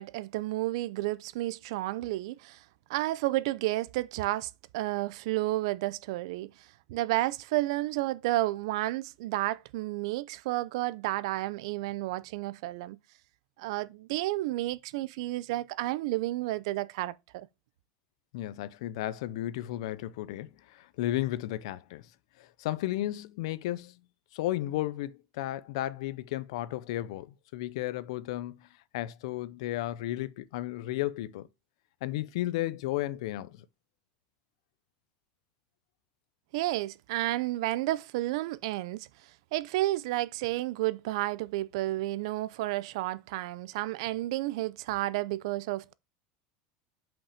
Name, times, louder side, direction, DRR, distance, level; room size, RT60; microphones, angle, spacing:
voice 1, 0.0-2.6 2.9-6.5 6.9-13.0 13.6-17.5 36.5-39.1 39.5-45.9, right 17 dB, 65° right, 0.5 m, -31 dB
voice 2, 18.3-22.1 22.4-24.0 24.3-28.7 28.9-31.5 32.0-33.6, left 15 dB, 70° left, 0.6 m, -34 dB
5.9 x 5.3 x 4.9 m
supercardioid pair, 170°, 3 cm